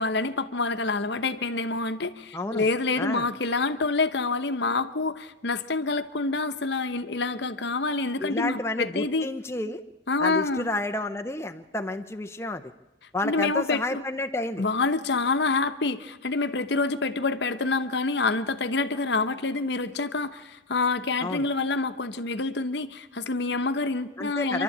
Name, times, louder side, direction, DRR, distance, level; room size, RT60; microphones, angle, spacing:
voice 1, 0.0-9.3 10.1-10.7 13.2-14.0 14.6-24.6, left 3 dB, 60° left, 10 dB, 0.9 m, -27 dB
voice 2, 2.3-2.7 3.0-3.3 8.2-9.8 10.2-12.6 13.1-14.7 21.2-21.5 24.2-24.6, left 2 dB, 15° left, 5 dB, 0.6 m, -30 dB
25.5 x 12.0 x 8.6 m, 1.1 s
head